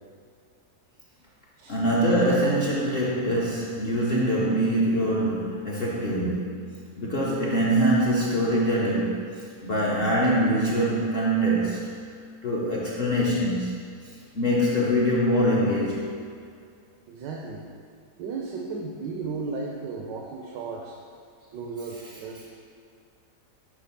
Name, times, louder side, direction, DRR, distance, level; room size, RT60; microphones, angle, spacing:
voice 1, 1.7-12.0 12.4-13.9 14.3-16.1, equal, 55° left, -5 dB, 0.6 m, -24 dB
voice 2, 17.1-17.7 18.2-21.0 21.5-22.6, right 4 dB, 90° right, 0 dB, 1.3 m, -35 dB
6.1 x 3.5 x 5.7 m, 2.3 s
omnidirectional pair, 1.8 m